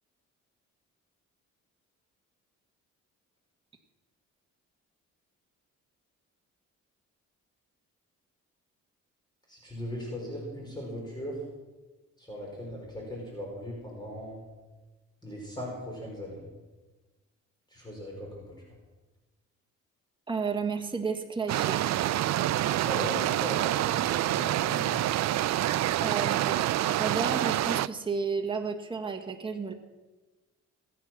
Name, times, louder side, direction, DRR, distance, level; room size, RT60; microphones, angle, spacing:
voice 1, 9.5-11.4 12.2-14.4 15.2-16.4 17.7-18.5 22.8-25.0, equal, 15° left, -2 dB, 4.8 m, -39 dB
voice 2, 20.3-21.8 26.0-29.7, right 5 dB, 15° right, 4 dB, 1.6 m, -32 dB
sound 1, 21.5-27.9, right 13 dB, 65° right, 0.5 m, -27 dB
20.5 x 9.2 x 6.0 m, 1.2 s
cardioid pair, 90°, 30 cm